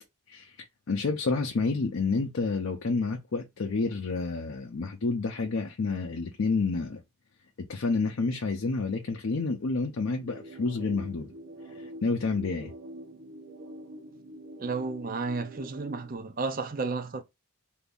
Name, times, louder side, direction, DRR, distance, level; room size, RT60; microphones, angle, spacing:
voice 1, 0.3-7.0 7.6-11.3 11.8-12.7, left 4 dB, 65° left, 0.5 m, -29 dB
sound 1, 10.2-16.2, right 1 dB, 70° right, 0.9 m, -45 dB
voice 2, 14.6-17.2, right 4 dB, 40° right, 0.5 m, -32 dB
2.7 x 2.5 x 3.5 m
head